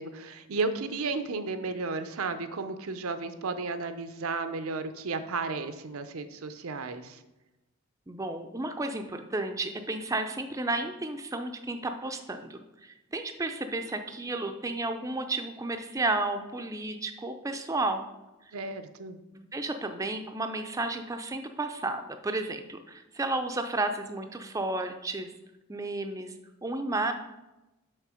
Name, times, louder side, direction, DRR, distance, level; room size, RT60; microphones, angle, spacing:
voice 1, 0.0-7.2 18.5-19.2, right 3 dB, 80° right, 10 dB, 0.7 m, -33 dB
voice 2, 8.1-18.1 18.4-18.5 19.3-25.3 25.7-26.3 26.6-27.1, right 2 dB, 15° right, 6 dB, 0.5 m, -32 dB
6.5 x 5.9 x 4.9 m, 1.0 s
head